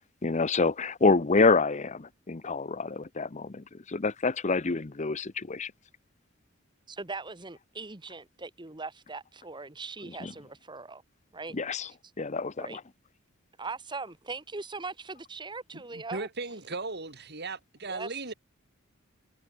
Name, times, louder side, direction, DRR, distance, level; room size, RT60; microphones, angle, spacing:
voice 1, 0.2-5.7 10.2-10.3 11.5-11.9 12.2-12.8, left 4 dB, 35° left, 0.7 m, -27 dB
voice 2, 6.9-11.0 11.3-11.6 12.6-12.8 13.6-16.3 17.9-18.1, right 3 dB, 20° right, 1.4 m, -40 dB
voice 3, 15.7-18.3, right 3 dB, 50° right, 3.4 m, -37 dB
head